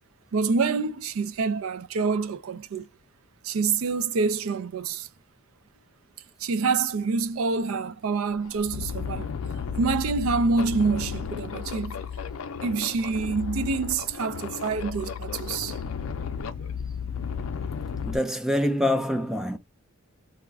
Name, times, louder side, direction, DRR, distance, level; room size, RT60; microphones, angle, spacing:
voice 1, 0.3-2.9 3.4-5.1 6.4-9.3 9.8-12.0 12.6-15.8, right 4 dB, 75° right, 0.4 m, -26 dB
sound 1, 7.8-7.9 8.3-18.2, left 6 dB, 80° left, 0.4 m, -34 dB
voice 2, 18.0-19.6, left 1 dB, ahead, 0.4 m, -25 dB
2.4 x 2.1 x 3.4 m
head